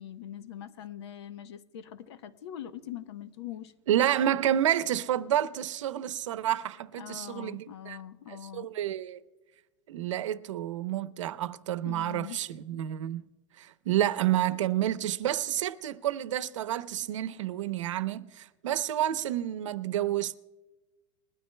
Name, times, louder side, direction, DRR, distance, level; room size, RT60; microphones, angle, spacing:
voice 1, 0.0-3.7 7.0-8.7 11.8-12.4, left 10 dB, 60° left, 0.9 m, -42 dB
voice 2, 3.9-8.0 8.3-9.2 9.9-13.2 13.6-20.4, right 12 dB, 90° right, 0.8 m, -29 dB
21.0 x 13.0 x 2.2 m
supercardioid pair, 170°, 16 cm